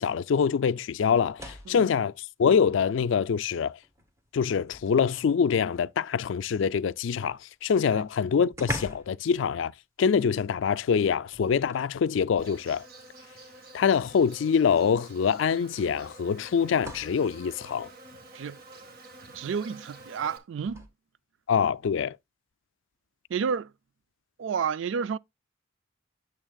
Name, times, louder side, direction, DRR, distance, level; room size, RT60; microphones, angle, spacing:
voice 1, 0.0-2.1 2.4-3.8 4.3-9.7 10.0-12.9 13.7-17.9 21.5-22.2, left 6 dB, 65° left, 0.3 m, -25 dB
sound 1, 1.1-1.9 3.2-3.3 3.8-5.4 7.5-7.6 7.8-7.9 8.5-9.2 9.5-9.7 11.3-12.0 13.2-13.3 14.8-14.9 15.8-17.2 20.6-20.9, left 1 dB, 15° right, 1.4 m, -41 dB
Insect, 12.4-20.4, right 2 dB, 50° right, 1.6 m, -49 dB
voice 2, 19.3-20.9 23.3-23.7 24.4-25.2, right 6 dB, 65° right, 0.3 m, -30 dB
8.8 x 7.4 x 2.3 m
head